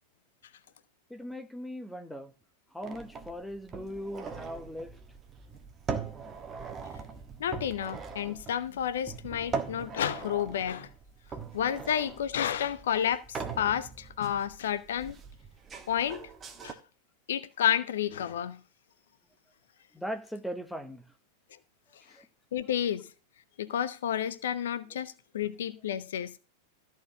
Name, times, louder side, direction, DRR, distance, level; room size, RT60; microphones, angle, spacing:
voice 1, 1.1-2.3 2.7-5.0 19.9-21.0 22.1-22.2, equal, 5° left, 1.1 m, -39 dB
sound 1, 2.8-16.7, right 5 dB, 20° right, 1.3 m, -41 dB
voice 2, 7.4-10.9 11.5-15.2 15.9-16.3 16.6-16.8 17.3-18.6 22.5-23.1 23.6-26.3, left 9 dB, 60° left, 0.6 m, -31 dB
13.5 x 4.6 x 6.9 m
figure-of-eight pair, 90°, 0 cm